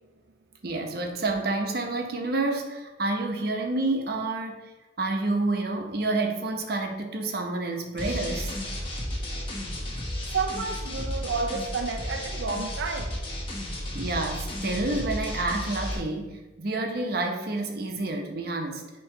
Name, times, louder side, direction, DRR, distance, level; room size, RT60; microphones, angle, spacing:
voice 1, 0.6-8.5 13.9-18.9, right 2 dB, 55° right, 3 dB, 0.9 m, -29 dB
sound 1, 8.0-16.0, left 1 dB, 30° left, 1.2 m, -33 dB
voice 2, 10.3-13.2, right 4 dB, 85° right, 2 dB, 0.5 m, -30 dB
7.1 x 3.1 x 4.9 m, 1.2 s
head